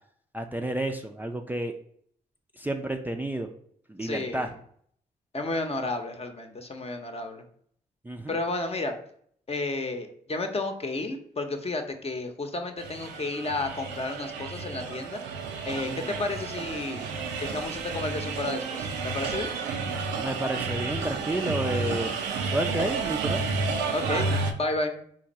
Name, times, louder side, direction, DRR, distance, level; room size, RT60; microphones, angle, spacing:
voice 1, 0.3-1.7 2.6-3.5 3.9-4.5 8.0-8.4 15.8-16.1 20.2-22.1 22.4-23.4, right 1 dB, 10° right, 4 dB, 0.4 m, -31 dB
voice 2, 4.0-4.5 5.3-7.4 8.3-8.9 9.5-15.2 15.7-17.0 17.4-19.5 23.9-25.0, left 2 dB, 35° left, 5 dB, 0.8 m, -32 dB
sound 1, 12.8-24.5, right 4 dB, 85° right, 0.5 m, -31 dB
3.6 x 2.5 x 4.2 m, 0.63 s
supercardioid pair, 45°, 17 cm